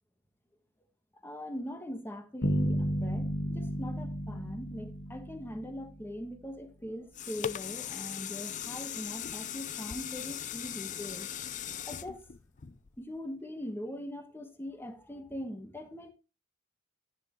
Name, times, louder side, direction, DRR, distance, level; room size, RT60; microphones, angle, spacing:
voice 1, 1.2-11.3 11.9-12.2 13.0-16.1, equal, 10° left, 1.3 m, -41 dB
sound 1, 2.4-6.1, equal, 65° left, 1.7 m, -33 dB
sound 2, 6.8-13.2 13.7-13.8, left 9 dB, 40° left, 0.5 m, -39 dB
10.5 x 9.7 x 3.1 m
head